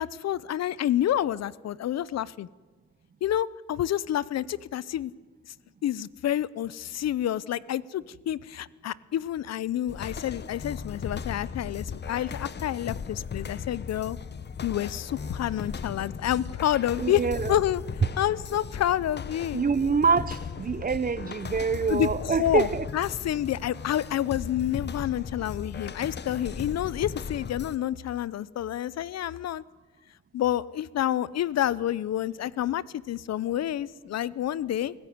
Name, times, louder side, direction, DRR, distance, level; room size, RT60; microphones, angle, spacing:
voice 1, 0.0-2.5 3.2-5.1 5.8-14.2 14.6-17.2 17.5-17.8 18.2-19.6 21.9-22.7 22.9-29.6 30.3-34.9, left 11 dB, 60° left, 0.6 m, -28 dB
sound 1, 9.9-27.8, left 6 dB, 35° left, 0.9 m, -37 dB
voice 2, 17.0-17.6 19.5-22.8, right 5 dB, 30° right, 0.8 m, -26 dB
23.0 x 14.5 x 9.5 m
cardioid pair, 90°, 30 cm